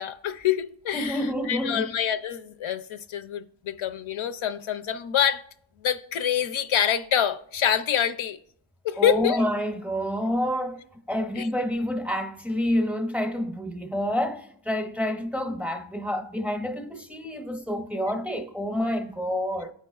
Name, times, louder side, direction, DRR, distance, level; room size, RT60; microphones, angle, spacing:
voice 1, 0.0-1.2 1.5-5.4 5.8-8.4 8.8-9.4 11.4-11.5, left 9 dB, 85° left, 0.5 m, -26 dB
voice 2, 0.9-1.9 9.0-10.8 11.1-19.7, equal, 5° right, 0.5 m, -28 dB
13.0 x 4.6 x 2.3 m
wide cardioid pair, 125°, 46 cm